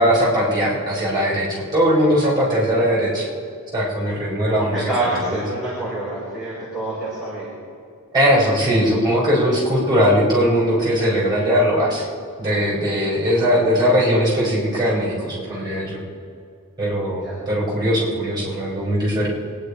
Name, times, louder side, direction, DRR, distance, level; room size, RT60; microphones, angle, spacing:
voice 1, 0.0-3.3 3.7-4.9 5.2-5.4 8.1-12.1 12.4-16.0 16.8-19.3, equal, 20° right, -5 dB, 4.9 m, -19 dB
voice 2, 4.5-7.5 17.2-17.4, right 2 dB, ahead, -10 dB, 4.3 m, -27 dB
24.0 x 10.0 x 4.9 m, 2.4 s
head